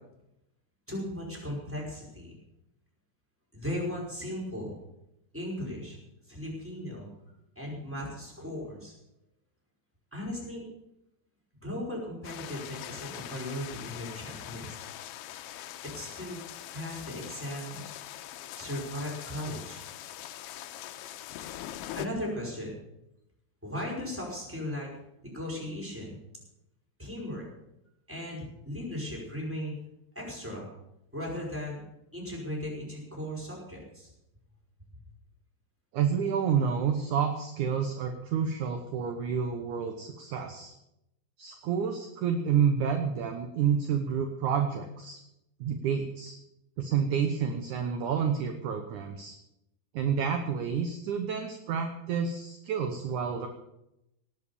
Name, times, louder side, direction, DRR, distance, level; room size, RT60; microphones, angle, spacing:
voice 1, 0.9-2.3 3.5-4.8 5.3-6.0 6.3-7.1 7.5-8.9 10.1-10.6 11.6-14.8 15.9-16.4 16.7-17.9 18.5-19.8 22.0-22.8 23.6-24.9 25.2-26.2 27.0-27.4 28.1-29.7 30.1-30.7 31.1-31.8 32.1-34.1, left 1 dB, 5° right, -2 dB, 4.7 m, -37 dB
sound 1, 12.2-22.1, left 12 dB, 80° left, 2.6 m, -42 dB
voice 2, 35.9-40.7 41.4-45.2 45.6-46.4 46.8-49.4 49.9-53.5, right 7 dB, 65° right, 5 dB, 2.0 m, -29 dB
18.0 x 8.5 x 7.0 m, 0.86 s
omnidirectional pair, 4.8 m